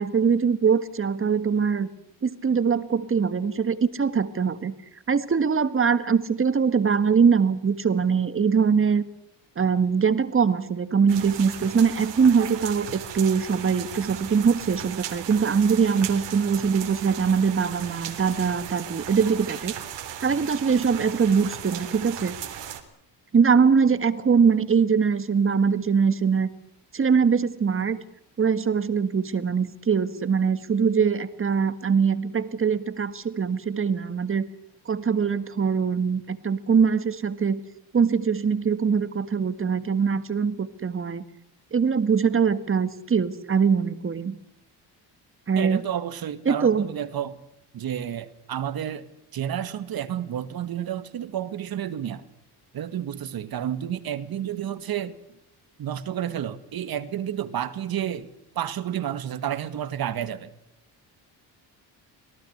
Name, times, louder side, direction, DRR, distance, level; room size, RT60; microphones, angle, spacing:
voice 1, 0.0-1.9 2.2-4.7 5.1-9.0 9.6-19.7 20.2-22.4 23.3-26.5 26.9-28.0 28.4-34.4 34.9-37.6 37.9-41.2 41.7-44.4 45.5-45.8 46.5-46.9, right 6 dB, 30° right, 12 dB, 1.8 m, -22 dB
sound 1, 11.1-22.8, right 10 dB, 75° right, 3.5 m, -37 dB
voice 2, 45.6-47.4 47.7-52.3 52.7-55.2 55.8-60.5, right 10 dB, 55° right, 12 dB, 2.0 m, -31 dB
26.5 x 18.5 x 8.1 m, 0.79 s
cardioid pair, 110°, 43 cm